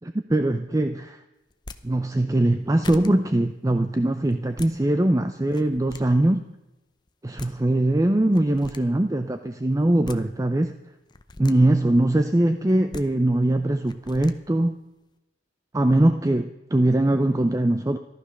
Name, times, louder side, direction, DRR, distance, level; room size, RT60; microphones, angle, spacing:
voice 1, 0.0-1.2 1.8-6.4 7.2-10.7 11.4-14.8 15.7-18.0, right 1 dB, 15° right, 8 dB, 0.5 m, -21 dB
sound 1, 1.5-1.8 2.5-2.6 2.8-3.1 4.3-4.7 5.4-6.0 7.1-7.2 7.4-7.5 8.3-8.8 9.8-10.2 11.1-11.5 12.7-13.0 13.9-14.3, left 3 dB, 20° left, 0.7 m, -40 dB
14.5 x 12.0 x 6.4 m, 0.98 s
head